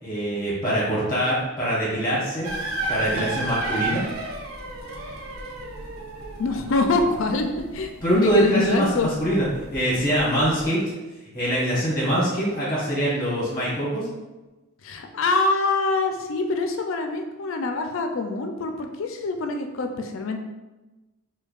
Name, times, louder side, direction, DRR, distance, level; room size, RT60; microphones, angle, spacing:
voice 1, 0.0-2.5 2.9-4.0 8.0-10.8 11.3-14.1, right 1 dB, 15° left, -7 dB, 1.0 m, -23 dB
sound 1, 2.4-10.6, right 2 dB, 85° right, 0.7 m, -33 dB
voice 2, 6.4-9.1 14.8-20.4, left 3 dB, 65° left, 5 dB, 0.4 m, -25 dB
5.2 x 2.2 x 2.4 m, 1.1 s
head